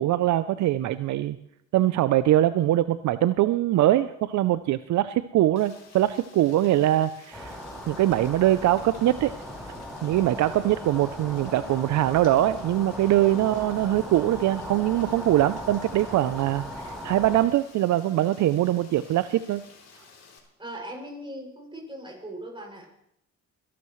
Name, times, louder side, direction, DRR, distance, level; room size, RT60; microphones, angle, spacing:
voice 1, 0.0-1.4 1.7-7.6 7.9-9.3 10.0-16.6 17.0-19.6, right 13 dB, 70° right, 14 dB, 0.5 m, -22 dB
Rain, 5.6-20.4, left 5 dB, 55° left, 3.1 m, -53 dB
sound 1, 7.3-17.5, equal, ahead, 4.4 m, -38 dB
voice 2, 20.6-22.9, right 1 dB, 15° right, 0 dB, 6.2 m, -39 dB
24.5 x 12.0 x 3.1 m, 0.75 s
cardioid pair, 90°, 30 cm